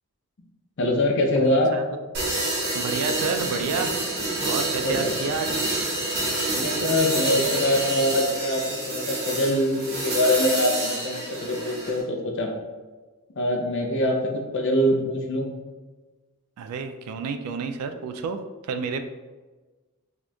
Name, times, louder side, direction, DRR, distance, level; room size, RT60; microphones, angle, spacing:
voice 1, 0.8-1.7 4.8-5.1 6.5-12.5 13.4-15.5, left 1 dB, 55° left, 2 dB, 0.5 m, -24 dB
voice 2, 1.5-1.8 2.7-4.0 4.5-5.7 16.6-19.0, right 5 dB, 85° right, 8 dB, 0.3 m, -30 dB
sound 1, 2.1-12.0, right 2 dB, 50° right, 0.9 m, -28 dB
4.2 x 3.0 x 2.2 m, 1.3 s
head